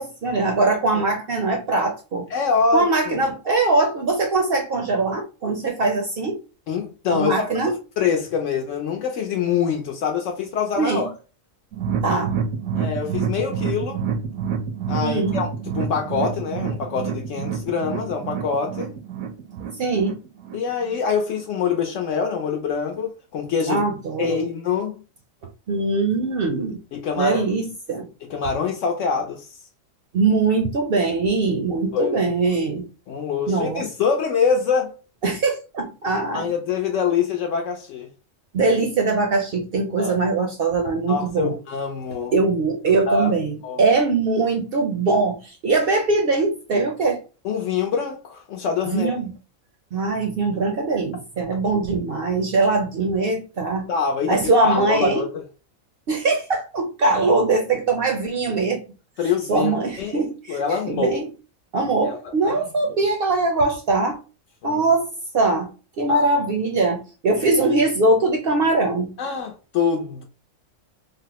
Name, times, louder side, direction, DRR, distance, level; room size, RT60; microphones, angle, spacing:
voice 1, 0.0-2.3 2.7-6.4 7.1-7.7 10.8-11.1 12.0-12.3 15.0-15.4 19.8-20.2 23.7-24.5 25.7-26.8 27.2-28.1 30.1-32.8 33.5-33.8 35.2-36.5 38.5-41.6 42.3-47.2 48.9-49.3 49.9-53.9 54.3-55.2 56.1-58.8 59.5-61.3 61.7-64.2 64.6-65.1 65.3-65.7 66.0-69.1, right 3 dB, 60° right, 0.6 m, -22 dB
voice 2, 2.3-3.2 6.7-7.3 7.6-11.1 12.7-14.0 14.9-15.5 15.7-18.9 20.5-23.8 24.2-25.0 26.9-27.5 28.3-29.4 31.9-32.3 33.1-34.9 36.3-38.1 40.0-40.1 41.1-42.3 43.1-43.3 43.6-43.8 47.4-49.1 53.9-54.4 54.6-55.4 59.2-59.7 60.0-61.1 62.0-62.2 62.4-62.6 64.6-64.8 66.1-66.2 69.2-70.2, left 6 dB, 70° left, 0.9 m, -25 dB
sound 1, 11.7-21.0 21.3-21.4 21.8-21.9, right 6 dB, 80° right, 1.0 m, -28 dB
3.5 x 2.0 x 2.8 m
omnidirectional pair, 1.4 m